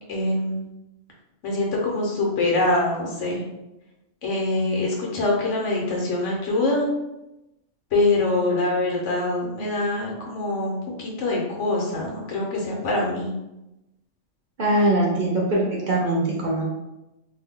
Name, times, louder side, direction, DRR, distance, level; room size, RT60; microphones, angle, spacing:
voice 1, 0.1-0.6 1.4-3.4 4.2-6.9 7.9-13.3, left 2 dB, 85° left, -2 dB, 1.2 m, -24 dB
voice 2, 14.6-16.6, right 1 dB, 50° right, -3 dB, 0.6 m, -22 dB
2.7 x 2.1 x 3.6 m, 0.94 s
omnidirectional pair, 1.2 m